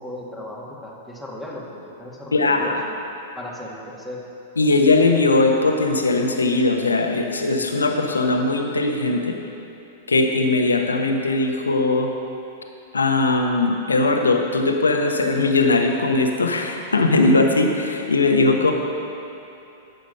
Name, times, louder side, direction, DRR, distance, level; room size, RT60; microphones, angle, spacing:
voice 1, 0.0-3.0 3.4-4.2 18.5-18.7, left 1 dB, ahead, -4 dB, 2.0 m, -36 dB
voice 2, 2.3-2.8 4.6-9.4 10.1-12.1 12.9-18.7, left 2 dB, 85° left, 3 dB, 1.0 m, -19 dB
11.5 x 7.9 x 5.6 m, 2.9 s
hypercardioid pair, 105°, 0 cm